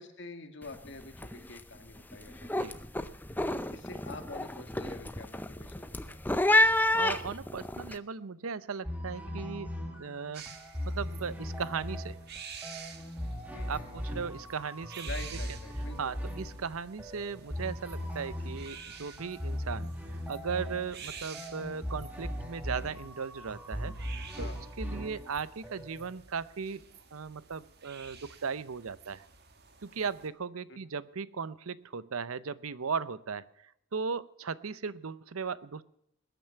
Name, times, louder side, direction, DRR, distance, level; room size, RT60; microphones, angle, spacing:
voice 1, 0.0-2.8 3.7-6.2 13.5-14.0 15.1-16.2 24.4-24.6 30.7-30.8, left 3 dB, 55° left, 6 dB, 2.1 m, -47 dB
sound 1, 0.6-0.9 1.1-1.6 2.0-7.9, left 1 dB, 10° left, 0.6 m, -29 dB
voice 2, 6.9-10.5 10.8-12.2 13.7-15.1 16.0-24.5 24.8-29.2 29.8-35.8, right 5 dB, 85° right, 18 dB, 0.7 m, -37 dB
sound 2, 8.8-26.1, equal, 5° right, 1.8 m, -39 dB
sound 3, 10.3-30.3, right 6 dB, 50° right, 1.5 m, -50 dB
21.0 x 9.2 x 5.7 m, 0.76 s
head